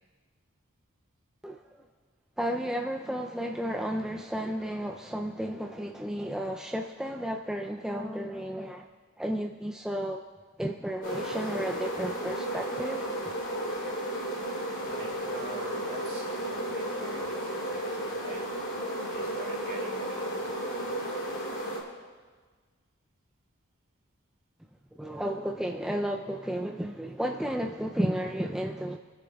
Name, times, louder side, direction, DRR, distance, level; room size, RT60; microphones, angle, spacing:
voice 1, 2.4-8.9 9.2-10.2 10.6-13.0 24.9-29.0, equal, 5° right, 1 dB, 0.3 m, -33 dB
sound 1, 11.0-21.8, right 1 dB, 60° left, 3.0 m, -33 dB
voice 2, 13.4-13.9 14.3-18.4 19.1-21.0, right 1 dB, 50° right, -1 dB, 3.2 m, -47 dB
26.5 x 10.0 x 2.3 m, 1.4 s
head